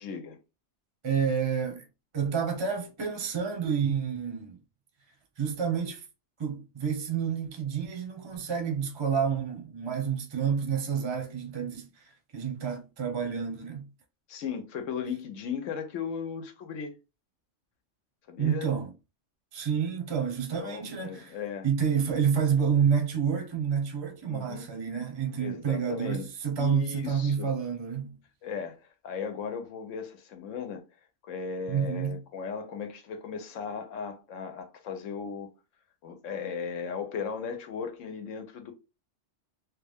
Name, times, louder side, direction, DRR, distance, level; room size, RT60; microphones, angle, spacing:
voice 1, 0.0-0.4 14.3-16.9 18.3-18.7 20.5-21.7 24.3-24.7 25.4-26.3 26.6-27.5 28.4-28.8 29.0-30.8 31.2-35.5 36.0-38.7, left 6 dB, 90° left, 1.1 m, -36 dB
voice 2, 1.0-1.9 2.1-4.6 5.4-6.0 6.4-13.9 18.4-18.9 19.5-21.4 21.6-28.2 31.7-32.2, right 7 dB, 30° right, 0.5 m, -29 dB
3.1 x 2.2 x 3.4 m
omnidirectional pair, 1.3 m